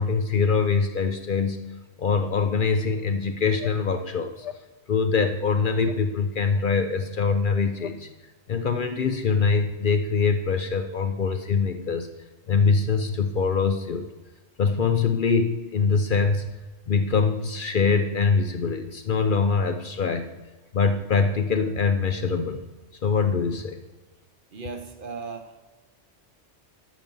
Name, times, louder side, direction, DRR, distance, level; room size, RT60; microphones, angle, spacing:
voice 1, 0.0-1.6 2.0-4.5 4.9-8.1 8.5-12.1 12.5-14.1 14.6-16.5 16.9-20.3 20.7-22.6 23.0-23.8, left 5 dB, 55° left, 8 dB, 0.7 m, -23 dB
sound 1, 3.0-3.1 3.5-3.8 4.4-4.6 5.1-5.5 5.8-6.0 6.5-6.6 7.2-7.3 7.7-8.0, left 10 dB, 80° left, 0.9 m, -40 dB
voice 2, 24.5-25.7, right 4 dB, 50° right, 6 dB, 1.0 m, -37 dB
12.5 x 6.0 x 5.4 m, 1.2 s
omnidirectional pair, 1.2 m